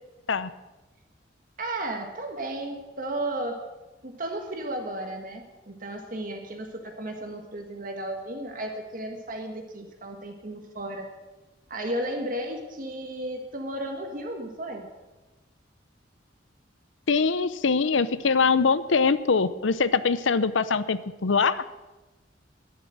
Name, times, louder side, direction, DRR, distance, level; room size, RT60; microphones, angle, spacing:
voice 1, 1.6-3.6 4.0-11.1 11.7-14.9, right 1 dB, 45° right, 3 dB, 1.5 m, -34 dB
voice 2, 17.1-21.6, left 5 dB, 85° left, 15 dB, 0.7 m, -23 dB
11.0 x 10.5 x 7.8 m, 1.1 s
head